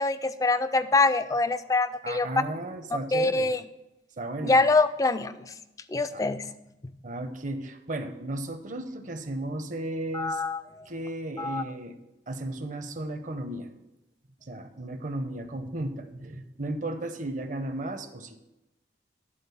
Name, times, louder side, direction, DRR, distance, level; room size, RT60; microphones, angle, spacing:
voice 1, 0.0-2.3 3.1-3.6 4.4-5.3 5.9-6.5 10.1-10.9 11.4-11.6, left 3 dB, 20° left, 12 dB, 0.3 m, -24 dB
voice 2, 2.0-3.5 4.2-4.6 6.1-6.2 7.0-10.4 10.9-12.0 12.3-13.7 14.4-18.4, right 1 dB, 45° right, 8 dB, 0.7 m, -34 dB
10.0 x 3.9 x 6.9 m, 0.93 s
head